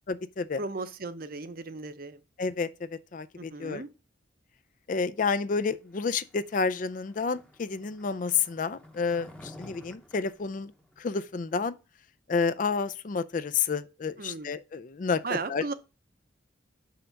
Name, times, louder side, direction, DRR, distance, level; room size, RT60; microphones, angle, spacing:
voice 1, 0.1-0.6 2.4-3.8 4.9-10.7 11.0-11.8 12.3-15.7, left 5 dB, 45° left, 0.4 m, -30 dB
voice 2, 0.6-2.2 3.4-3.9 14.2-14.5 15.2-15.7, right 3 dB, 50° right, 0.7 m, -36 dB
Skateboard, 6.2-11.6, left 1 dB, 5° left, 0.8 m, -52 dB
5.7 x 5.2 x 5.8 m
head